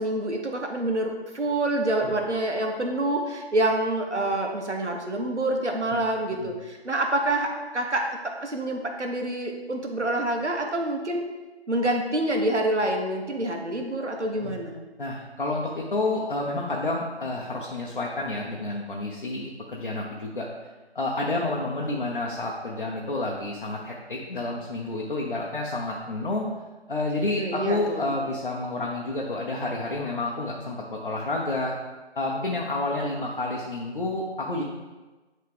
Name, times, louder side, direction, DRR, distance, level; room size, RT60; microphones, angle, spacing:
voice 1, 0.0-11.2 11.7-14.8 27.4-28.1, right 1 dB, 90° right, 2 dB, 1.2 m, -27 dB
voice 2, 15.0-20.5 20.9-26.5 26.9-31.7 32.1-34.6, left 2 dB, 50° left, -2 dB, 0.8 m, -29 dB
9.6 x 3.2 x 3.4 m, 1.2 s
figure-of-eight pair, 165°, 34 cm